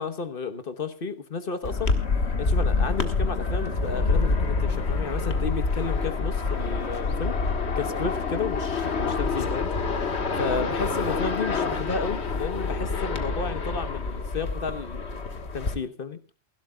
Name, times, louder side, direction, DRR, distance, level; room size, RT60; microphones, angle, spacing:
voice 1, 0.0-1.9 2.4-7.4 7.7-9.7 10.3-16.2, left 5 dB, 50° left, 11 dB, 1.3 m, -32 dB
sound 1, 1.6-15.7, left 4 dB, 65° left, 1.8 m, -27 dB
28.5 x 12.0 x 2.3 m, 0.32 s
omnidirectional pair, 1.2 m